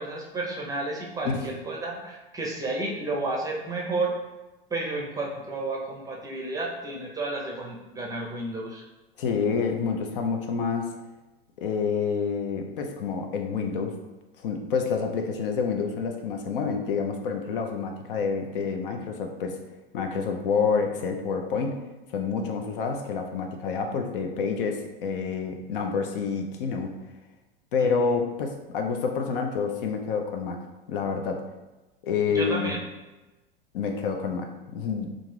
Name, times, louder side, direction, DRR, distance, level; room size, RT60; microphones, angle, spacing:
voice 1, 0.0-4.1 4.7-8.8 27.8-28.1 32.3-32.8, right 2 dB, 10° right, -2 dB, 0.6 m, -31 dB
voice 2, 9.2-10.9 11.6-14.0 14.4-19.6 19.9-21.8 22.1-27.0 27.7-30.6 30.9-31.4 32.0-32.8 33.7-35.1, left 5 dB, 65° left, 4 dB, 0.5 m, -28 dB
2.5 x 2.5 x 3.2 m, 1.1 s
hypercardioid pair, 85°, 30 cm